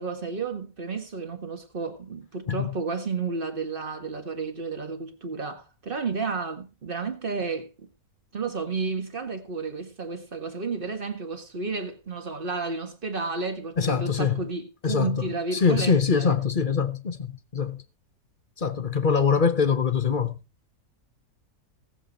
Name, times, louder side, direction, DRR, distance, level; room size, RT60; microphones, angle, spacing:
voice 1, 0.0-7.9 8.3-16.4, right 4 dB, 35° right, 1.9 m, -32 dB
voice 2, 13.8-14.4 14.8-15.2 15.5-17.8 18.6-20.4, left 6 dB, 40° left, 0.9 m, -23 dB
19.0 x 7.7 x 4.1 m
omnidirectional pair, 1.7 m